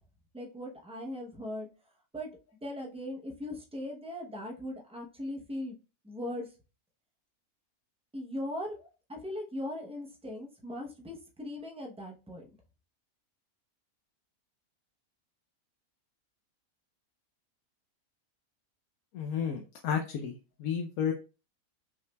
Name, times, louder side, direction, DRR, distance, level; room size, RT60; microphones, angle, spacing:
voice 1, 0.3-1.7 2.1-2.3 2.6-5.8 6.0-6.5 8.1-8.8 9.1-12.5, left 1 dB, 10° right, 0 dB, 0.4 m, -39 dB
voice 2, 19.1-21.1, left 7 dB, 80° left, 3 dB, 1.1 m, -32 dB
5.6 x 3.1 x 2.2 m, 0.32 s
omnidirectional pair, 1.5 m